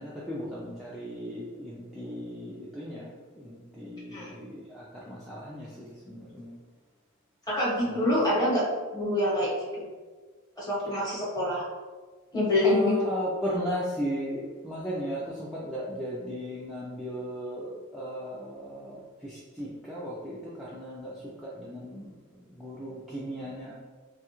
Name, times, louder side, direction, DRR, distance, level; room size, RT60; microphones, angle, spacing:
voice 1, 0.0-6.5 7.8-8.1 12.6-23.7, equal, ahead, -8 dB, 0.3 m, -36 dB
voice 2, 7.5-8.6 8.9-9.9 10.6-11.6 12.3-12.9, left 1 dB, 20° left, -6 dB, 0.9 m, -26 dB
3.1 x 2.3 x 2.9 m, 1.4 s
head